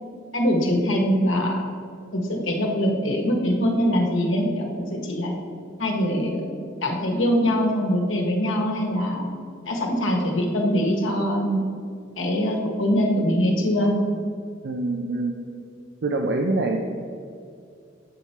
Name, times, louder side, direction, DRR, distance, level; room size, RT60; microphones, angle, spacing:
voice 1, 0.3-1.6 2.1-5.3 5.8-9.3 9.6-11.6 12.2-14.0, equal, 75° left, 1 dB, 1.2 m, -23 dB
voice 2, 14.6-15.3 16.0-16.8, right 2 dB, 60° right, 2 dB, 0.5 m, -24 dB
7.5 x 4.5 x 4.3 m, 2.3 s
head